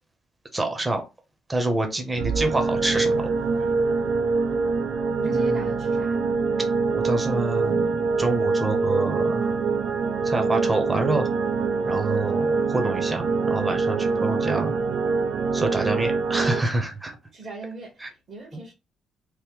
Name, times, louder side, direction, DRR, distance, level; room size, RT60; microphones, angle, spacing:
voice 1, 0.5-1.0 1.5-3.2 5.2-5.7 6.9-9.5 10.2-11.3 11.8-14.7 15.5-17.2 18.0-18.1 18.5-18.6, right 2 dB, 15° right, 0.8 m, -27 dB
sound 1, 2.2-16.6, right 4 dB, 75° right, 0.4 m, -24 dB
voice 2, 5.1-6.2 17.3-18.7, right 3 dB, 50° right, 1.2 m, -40 dB
3.0 x 2.1 x 3.5 m
cardioid pair, 90°, 0 cm